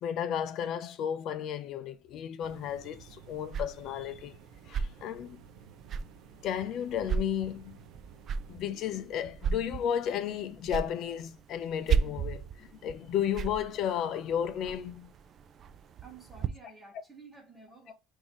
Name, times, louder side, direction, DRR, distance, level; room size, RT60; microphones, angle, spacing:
voice 1, 0.0-4.4 4.7-5.4 6.4-7.8 8.5-15.1, left 9 dB, 50° left, 0.5 m, -33 dB
sound 1, 2.4-16.5, right 6 dB, 35° right, 0.3 m, -37 dB
sound 2, 2.4-8.6, right 7 dB, 90° right, 0.9 m, -55 dB
voice 2, 16.0-17.9, right 4 dB, 10° right, 1.2 m, -51 dB
5.4 x 2.7 x 3.0 m
cardioid pair, 150°, 0 cm